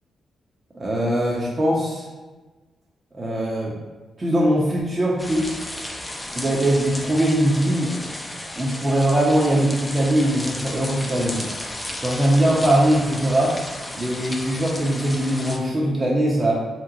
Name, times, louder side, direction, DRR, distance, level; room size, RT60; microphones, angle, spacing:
voice 1, 0.7-2.1 3.1-3.8 4.2-5.6 6.3-7.9 8.6-11.5 12.0-13.5 13.9-16.5, right 1 dB, 35° right, -5 dB, 0.7 m, -21 dB
sound 1, 5.2-15.6, left 1 dB, 20° left, 0.5 m, -33 dB
3.0 x 2.1 x 3.8 m, 1.3 s
hypercardioid pair, 40°, 0 cm